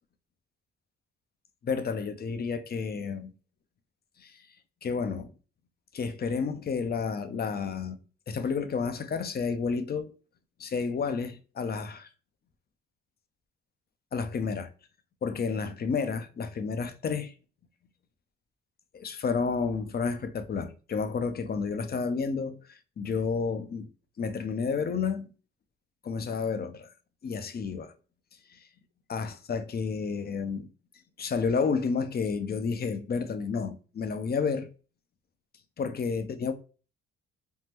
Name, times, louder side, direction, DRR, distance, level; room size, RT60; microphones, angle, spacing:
voice 1, 1.6-3.3 4.2-4.4 4.8-5.3 5.9-8.0 8.3-10.1 10.6-12.1 14.1-14.7 15.2-17.3 18.9-23.9 24.2-25.3 26.0-26.9 27.2-27.9 28.5-28.6 29.1-30.7 31.2-34.7 35.8-36.5, left 5 dB, 35° left, 0.4 m, -31 dB
3.5 x 2.0 x 2.8 m
cardioid pair, 90°, 30 cm